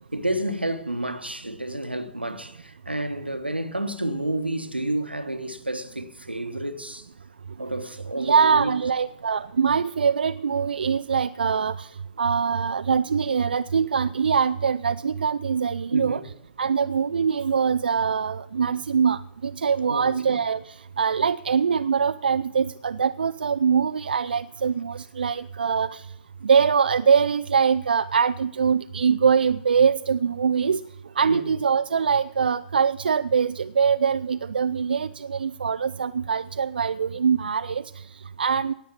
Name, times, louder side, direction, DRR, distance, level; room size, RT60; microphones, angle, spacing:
voice 1, 0.1-7.1 7.6-8.8 15.9-16.2 19.9-20.4 31.3-31.5, right 1 dB, 90° right, 1.2 m, -30 dB
voice 2, 8.2-11.9 12.2-16.2 16.6-26.1 26.4-30.8 31.2-38.7, right 6 dB, 70° right, 0.4 m, -23 dB
17.5 x 6.9 x 7.2 m
figure-of-eight pair, 115°, 5 cm